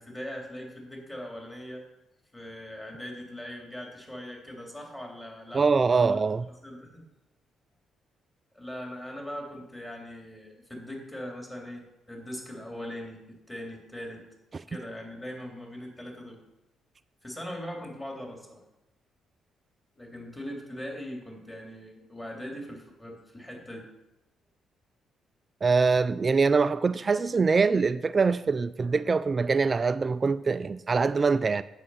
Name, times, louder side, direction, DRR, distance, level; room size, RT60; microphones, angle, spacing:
voice 1, 0.0-1.8 2.3-5.6 6.0-6.2 6.6-7.1 8.5-14.2 14.7-16.4 17.2-18.6 19.9-23.8, equal, 15° left, 3.0 m, -40 dB
voice 2, 5.5-6.5 25.6-31.6, right 4 dB, 35° right, 0.3 m, -24 dB
9.7 x 7.3 x 5.6 m
cardioid pair, 90°, 0 cm